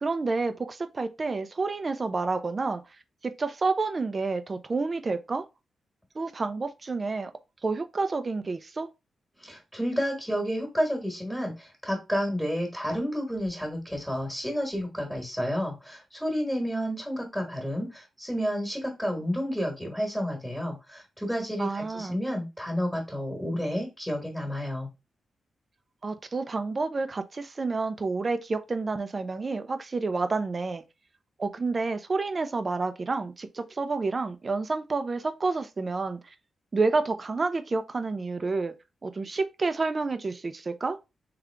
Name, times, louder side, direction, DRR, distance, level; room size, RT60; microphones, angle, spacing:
voice 1, 0.0-2.8 3.2-5.4 6.1-7.3 7.6-8.9 21.6-22.2 26.0-30.8 31.4-36.2 36.7-38.7 39.0-41.0, right 3 dB, 35° right, 0.6 m, -29 dB
voice 2, 9.4-24.9, equal, ahead, 1.5 m, -30 dB
3.7 x 3.4 x 3.4 m
cardioid pair, 90°, 0 cm